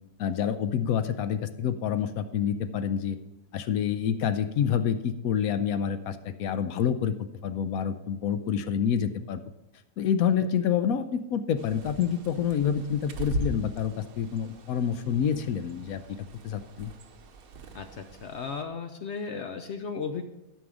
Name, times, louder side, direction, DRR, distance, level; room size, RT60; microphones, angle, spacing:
voice 1, 0.2-3.2 3.5-7.2 7.4-9.4 10.0-16.0 16.4-16.9, left 8 dB, 80° left, 10 dB, 1.1 m, -27 dB
Bird, 11.6-18.6, right 1 dB, 75° right, 1.3 m, -40 dB
voice 2, 17.7-20.2, left 5 dB, 60° left, 6 dB, 0.9 m, -35 dB
12.5 x 5.5 x 4.9 m, 0.88 s
omnidirectional pair, 1.5 m